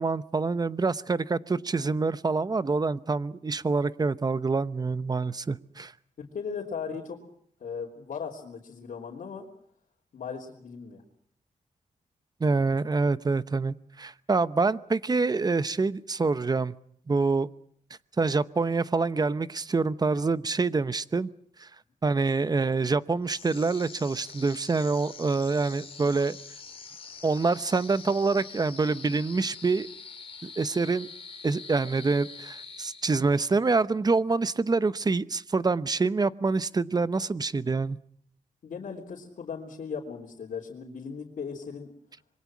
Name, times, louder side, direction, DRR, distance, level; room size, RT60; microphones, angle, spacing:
voice 1, 0.0-5.9 12.4-16.7 17.1-17.5 18.2-21.3 21.6-21.7 22.0-26.4 27.2-29.9 30.4-31.1 31.4-38.0, right 4 dB, 30° right, 16 dB, 0.9 m, -26 dB
voice 2, 6.2-7.2 7.6-9.5 10.1-11.0 38.6-41.9, left 6 dB, 70° left, -4 dB, 3.5 m, -37 dB
sound 1, 23.2-33.5, left 5 dB, 45° left, 2.4 m, -45 dB
26.0 x 22.5 x 6.1 m, 0.65 s
cardioid pair, 95°, 14 cm